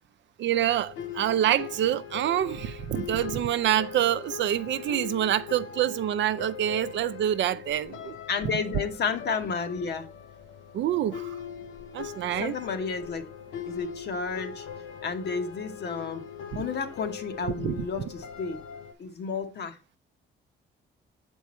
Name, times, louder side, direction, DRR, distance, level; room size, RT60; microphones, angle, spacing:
voice 1, 0.4-8.2 10.7-11.4 11.9-12.6 17.6-17.8, right 11 dB, 65° right, 0.5 m, -26 dB
sound 1, 0.5-18.9, left 8 dB, 85° left, 0.7 m, -41 dB
voice 2, 8.3-10.1 12.4-13.3 13.7-14.7 15.0-16.2 16.5-18.6 19.0-19.8, left 5 dB, 60° left, 1.0 m, -31 dB
6.7 x 4.6 x 4.2 m
cardioid pair, 90°, 20 cm